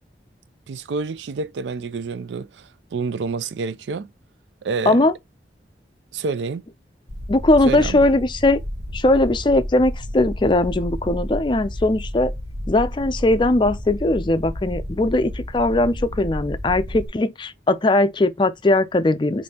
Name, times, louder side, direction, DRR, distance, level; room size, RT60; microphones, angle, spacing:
voice 1, 0.7-4.1 4.6-5.1 6.1-6.6 7.7-8.1, right 4 dB, 90° right, 0.4 m, -28 dB
sound 1, 7.1-17.1, equal, 65° right, 1.0 m, -31 dB
voice 2, 7.3-8.6 8.9-12.3 12.7-19.4, left 2 dB, 25° left, 0.4 m, -19 dB
5.2 x 2.7 x 2.8 m
head